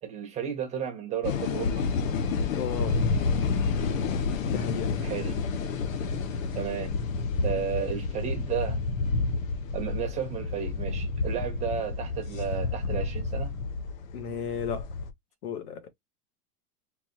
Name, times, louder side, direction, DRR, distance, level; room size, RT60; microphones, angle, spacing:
voice 1, 0.0-1.8 5.0-5.4 6.5-7.0 7.4-8.8 9.7-13.6, right 8 dB, 15° right, 1.4 m, -33 dB
sound 1, 1.2-15.1, left 4 dB, 65° left, 1.1 m, -29 dB
voice 2, 2.5-3.0 4.5-5.0 14.1-14.9 15.4-15.9, left 7 dB, 85° left, 1.7 m, -34 dB
4.4 x 3.4 x 2.9 m
supercardioid pair, 170°, 44 cm